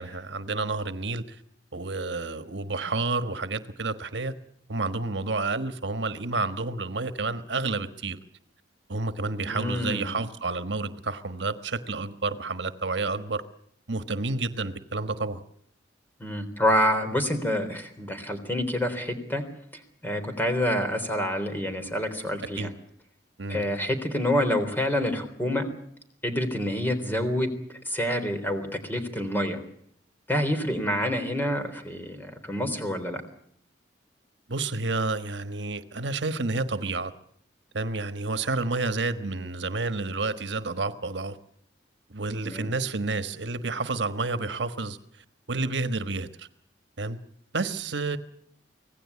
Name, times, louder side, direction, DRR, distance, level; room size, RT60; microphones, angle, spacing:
voice 1, 0.0-1.4 1.7-4.3 4.7-8.2 8.9-13.4 13.9-15.4 22.6-22.7 23.4-23.6 34.5-37.1 37.7-41.4 42.1-46.5 47.0-47.2 47.5-48.2, right 3 dB, 70° right, 1.4 m, -30 dB
voice 2, 9.4-10.2 16.2-19.4 19.7-22.7 23.5-25.7 26.2-27.5 27.9-29.6 30.3-33.2 42.4-42.7, equal, 10° left, 3.7 m, -27 dB
25.5 x 17.5 x 8.5 m
head